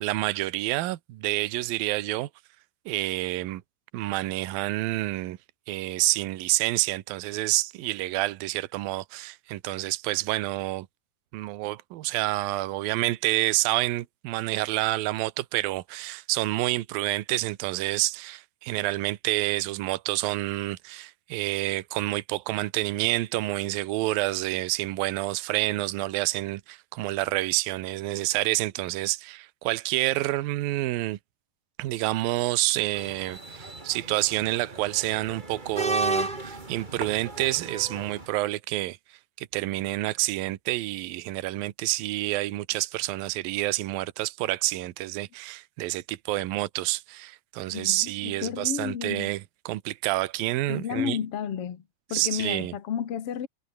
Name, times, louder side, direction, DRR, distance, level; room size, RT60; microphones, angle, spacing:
voice 1, 0.0-2.3 2.9-3.6 3.9-5.4 5.7-10.9 11.3-31.2 31.8-39.0 39.4-51.2 52.1-52.7, right 18 dB, 70° right, 2.5 m, -28 dB
sound 1, 32.9-38.3, right 2 dB, 15° right, 1.8 m, -33 dB
voice 2, 47.7-49.3 50.7-51.8 52.1-53.5, left 8 dB, 55° left, 1.7 m, -32 dB
omnidirectional pair, 5.1 m